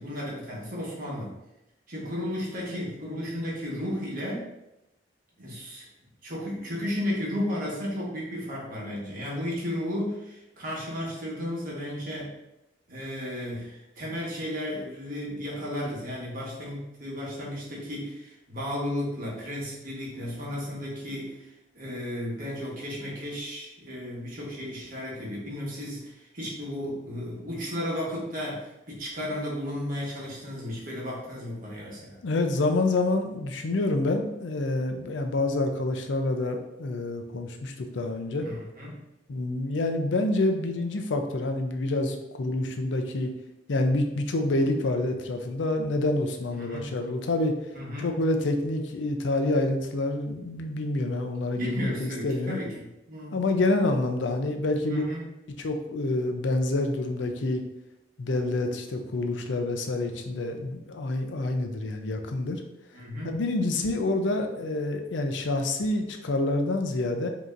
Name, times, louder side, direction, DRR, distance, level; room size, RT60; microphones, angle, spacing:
voice 1, 0.0-1.3 1.9-4.5 5.4-5.8 6.2-12.3 12.9-21.5 21.7-32.2 38.4-39.0 46.5-46.9 47.7-48.1 51.6-53.4 54.9-55.3 62.9-63.3, left 1 dB, 50° right, -4 dB, 1.3 m, -34 dB
voice 2, 32.2-38.5 39.3-43.3 43.7-47.5 48.0-52.6 53.3-55.0 55.6-57.6 58.2-62.6 63.3-67.3, left 2 dB, 90° left, 5 dB, 0.5 m, -27 dB
5.0 x 2.9 x 2.5 m, 0.92 s
head